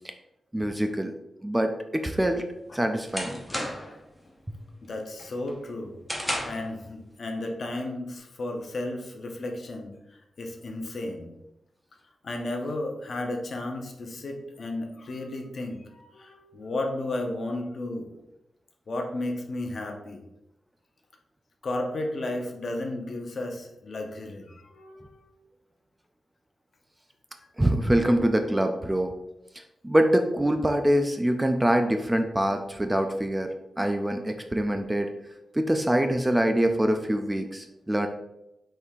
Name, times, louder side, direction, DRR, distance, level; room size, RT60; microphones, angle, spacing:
voice 1, 0.5-1.1 1.4-2.4 2.7-3.4 4.5-4.6 27.6-29.1 29.8-33.5 33.8-35.1 35.5-38.1, right 1 dB, 10° right, 5 dB, 0.3 m, -24 dB
sound 1, 2.3-4.0 4.4-4.8 5.2-6.7, equal, 5° left, 0.8 m, -33 dB
voice 2, 3.5-4.0 4.9-6.0 6.4-9.9 10.4-11.3 12.2-18.1 18.9-20.2 21.6-25.3 27.4-27.5, left 2 dB, 50° left, 3 dB, 0.8 m, -33 dB
5.1 x 4.4 x 2.4 m, 0.88 s
wide cardioid pair, 135°, 0 cm